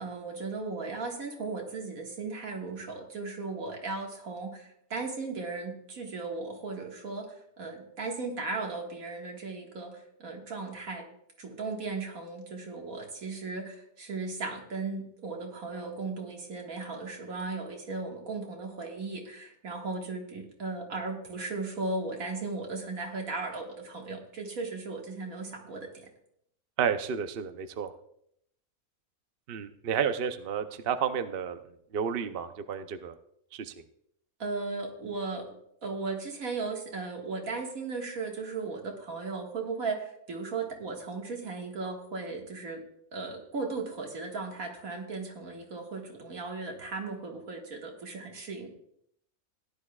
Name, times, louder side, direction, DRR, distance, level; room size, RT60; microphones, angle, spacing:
voice 1, 0.0-11.1 11.4-26.1 34.4-35.5 35.8-42.8 43.1-48.7, right 3 dB, 75° right, 0 dB, 2.2 m, -36 dB
voice 2, 26.8-27.9 29.5-31.6 31.9-33.1 33.5-33.7, right 7 dB, 55° right, 9 dB, 0.7 m, -31 dB
16.0 x 11.0 x 2.3 m, 0.73 s
omnidirectional pair, 1.5 m